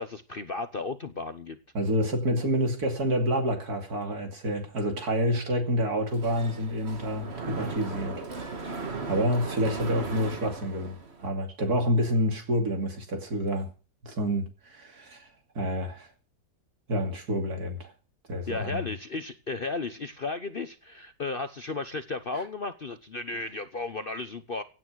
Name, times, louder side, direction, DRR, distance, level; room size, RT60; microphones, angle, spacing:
voice 1, 0.0-1.6 9.1-9.3 18.5-24.6, left 3 dB, 40° left, 0.9 m, -34 dB
voice 2, 1.7-8.2 9.1-13.7 14.0-15.3 15.5-16.1 16.9-17.9 18.3-18.8, equal, 65° right, 3.1 m, -28 dB
Mechanisms, 6.1-11.3, right 4 dB, 40° right, 2.0 m, -37 dB
17.0 x 9.2 x 6.2 m
omnidirectional pair, 1.8 m